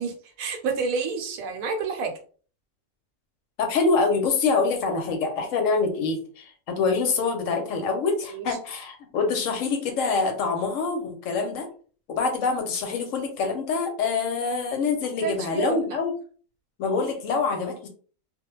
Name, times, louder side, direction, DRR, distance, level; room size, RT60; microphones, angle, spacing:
voice 1, 0.0-2.1 8.3-8.6 15.2-16.0, right 5 dB, 75° right, 3 dB, 1.0 m, -29 dB
voice 2, 3.6-11.7 12.1-16.1 16.8-17.9, left 4 dB, 70° left, 4 dB, 0.9 m, -25 dB
2.3 x 2.1 x 3.0 m, 0.41 s
omnidirectional pair, 1.5 m